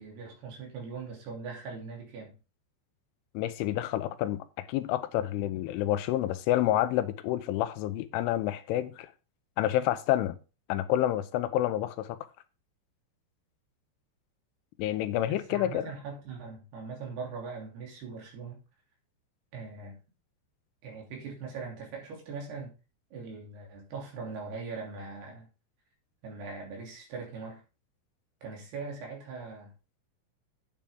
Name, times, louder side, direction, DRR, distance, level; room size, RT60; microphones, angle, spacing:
voice 1, 0.0-2.3 15.3-18.6 19.5-20.0 20.8-22.7 23.1-25.5 26.2-27.6 28.4-29.7, right 4 dB, 60° right, 4.8 m, -41 dB
voice 2, 3.3-9.1 9.6-10.4 10.7-12.2 14.8-15.9, left 13 dB, 85° left, 3.2 m, -29 dB
10.5 x 8.5 x 3.7 m
omnidirectional pair, 5.6 m